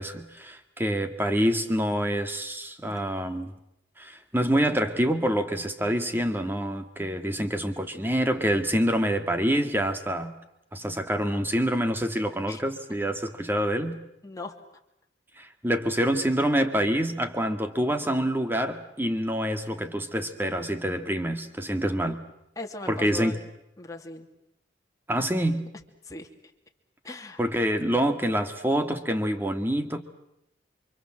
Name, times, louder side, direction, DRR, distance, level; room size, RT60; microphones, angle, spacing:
voice 1, 0.0-3.5 4.0-10.3 10.7-14.0 15.4-22.2 22.9-23.4 25.1-25.7 27.4-30.0, equal, 10° right, 7 dB, 2.1 m, -26 dB
voice 2, 14.2-14.6 22.6-23.5 23.8-24.3 26.1-26.3 27.0-27.4, left 3 dB, 20° left, 2 dB, 2.8 m, -39 dB
28.5 x 25.5 x 7.8 m, 0.82 s
head